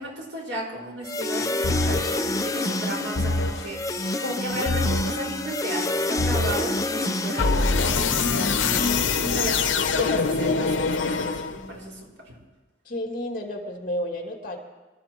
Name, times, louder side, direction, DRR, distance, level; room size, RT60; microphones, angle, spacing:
voice 1, 0.0-12.0 12.3-12.4, right 1 dB, 85° right, -2 dB, 5.3 m, -35 dB
sound 1, 1.0-10.2, left 2 dB, 20° left, 0.7 m, -29 dB
sound 2, 1.6-2.2 3.2-3.7 4.7-5.2 6.2-6.7 7.4-11.8, left 4 dB, 85° left, 0.9 m, -24 dB
voice 2, 12.8-14.6, equal, 50° left, 1 dB, 2.5 m, -31 dB
26.5 x 14.0 x 3.1 m, 1.2 s
head